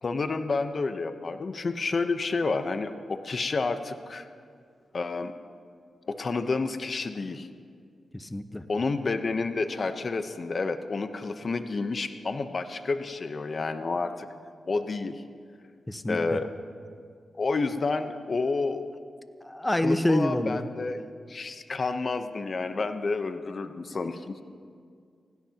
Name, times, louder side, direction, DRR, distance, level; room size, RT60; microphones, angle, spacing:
voice 1, 0.0-4.3 4.9-5.3 6.1-7.5 8.7-14.3 14.7-15.2 16.1-16.6 17.4-18.9 19.7-21.0 21.3-24.4, left 3 dB, 55° left, 8 dB, 0.9 m, -30 dB
voice 2, 8.1-8.6 15.9-16.4 19.4-20.6, left 1 dB, 15° left, 9 dB, 1.0 m, -27 dB
28.0 x 16.5 x 2.9 m, 2.2 s
cardioid pair, 55°, 0 cm